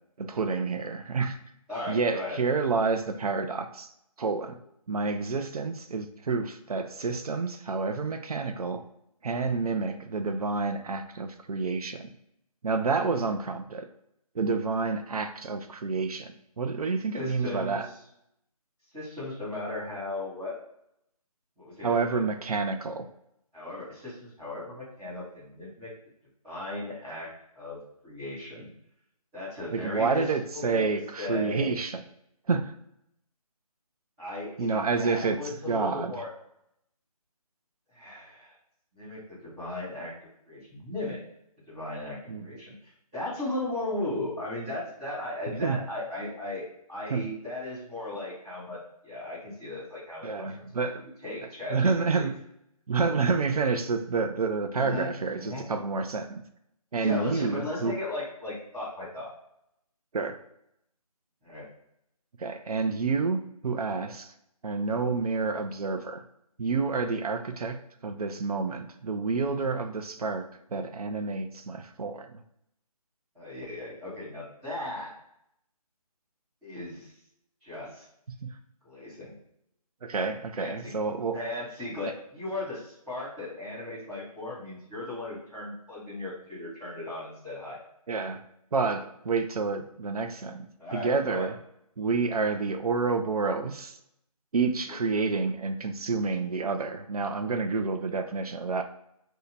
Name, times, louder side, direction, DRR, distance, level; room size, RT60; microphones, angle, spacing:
voice 1, 0.2-1.4 1.9-3.9 4.2-4.6 4.9-8.8 9.2-12.1 12.6-13.9 14.3-17.9 21.8-23.1 29.7-32.0 32.5-32.7 34.6-36.1 42.3-42.5 45.5-45.8 47.1-47.3 50.2-51.0 51.7-52.4 52.9-56.4 56.9-58.0 60.1-60.4 62.4-64.3 64.6-66.2 66.6-72.4 78.4-78.6 80.0-81.4 88.1-88.4 88.7-91.6 92.0-94.0 94.5-98.8, right 4 dB, 75° right, 7 dB, 0.5 m, -29 dB
voice 2, 1.7-2.4 17.1-17.8 18.9-20.5 21.6-22.2 23.5-25.9 26.4-27.3 27.5-28.7 29.3-30.2 30.5-30.8 31.2-31.8 34.2-36.3 37.9-38.5 38.9-40.1 40.5-41.2 41.7-42.2 42.4-46.6 46.9-48.8 49.0-50.7 51.0-52.3 54.7-55.1 55.4-55.6 56.9-59.3 61.4-61.6 73.3-75.1 76.6-77.1 77.6-78.0 78.8-79.3 80.5-80.9 81.3-87.8 90.8-91.5, left 2 dB, ahead, -16 dB, 0.4 m, -36 dB
2.7 x 2.1 x 4.0 m, 0.78 s
figure-of-eight pair, 160°, 20 cm